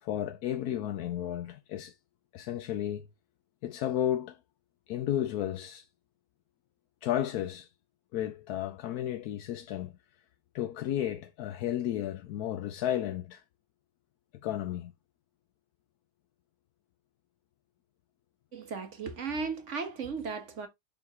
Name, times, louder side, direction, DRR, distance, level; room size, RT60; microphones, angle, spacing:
voice 1, 0.0-2.0 2.3-3.1 3.6-4.4 4.9-5.9 7.0-7.7 8.1-10.0 10.5-13.4 14.4-14.9, left 11 dB, 80° left, 1.1 m, -33 dB
voice 2, 18.5-20.7, right 5 dB, 50° right, 1.5 m, -36 dB
7.0 x 4.0 x 3.5 m
omnidirectional pair, 1.6 m